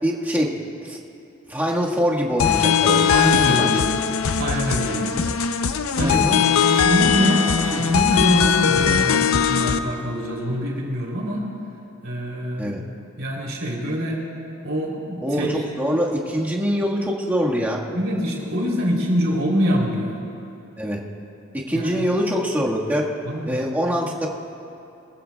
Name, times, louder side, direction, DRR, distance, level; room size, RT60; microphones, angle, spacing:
voice 1, 0.0-0.5 0.9-1.0 1.5-3.1 3.5-3.7 6.0-6.4 12.6-12.8 15.2-17.8 20.8-21.0 21.5-23.1 23.5-24.3, equal, 10° right, -4 dB, 1.6 m, -23 dB
sound 1, 2.4-9.8, left 7 dB, 85° left, 0.6 m, -20 dB
voice 2, 3.1-4.0 4.4-5.2 5.5-5.6 5.9-6.2 6.7-11.5 12.0-12.8 13.2-14.2 14.6-15.6 15.9-16.0 17.9-20.2 21.7-22.1 23.2-23.6, equal, 70° right, -2 dB, 3.3 m, -25 dB
24.0 x 15.0 x 2.3 m, 2.9 s
head